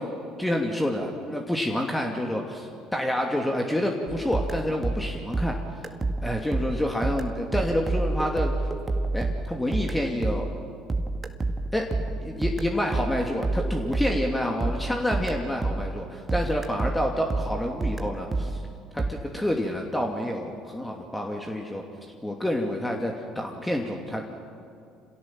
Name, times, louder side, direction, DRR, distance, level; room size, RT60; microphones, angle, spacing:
voice 1, 0.4-5.5 6.2-8.5 9.1-10.5 11.7-11.9 12.2-18.6 18.9-21.8 22.2-24.3, left 1 dB, 10° left, 1 dB, 2.6 m, -28 dB
sound 1, 4.1-16.0 16.3-19.1, right 2 dB, 25° right, 1.8 m, -29 dB
27.0 x 16.5 x 7.6 m, 2.4 s
hypercardioid pair, 65°, 0 cm